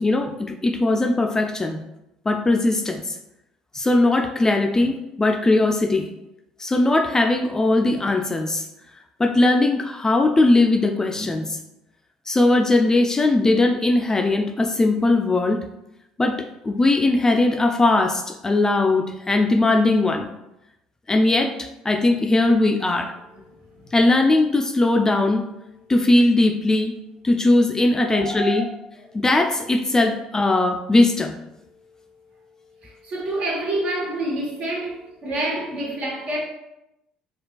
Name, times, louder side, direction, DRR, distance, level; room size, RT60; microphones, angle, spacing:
voice 1, 0.0-1.8 2.3-3.2 3.7-6.1 6.6-8.7 9.2-11.6 12.3-15.7 16.2-16.4 16.6-20.3 21.1-23.1 23.9-25.5 25.9-27.0 27.2-28.7 29.1-31.4, left 2 dB, 20° left, 4 dB, 0.3 m, -19 dB
voice 2, 28.1-28.6 32.8-36.4, right 1 dB, 55° right, -2 dB, 1.1 m, -27 dB
4.2 x 2.3 x 2.3 m, 0.90 s
hypercardioid pair, 65°, 3 cm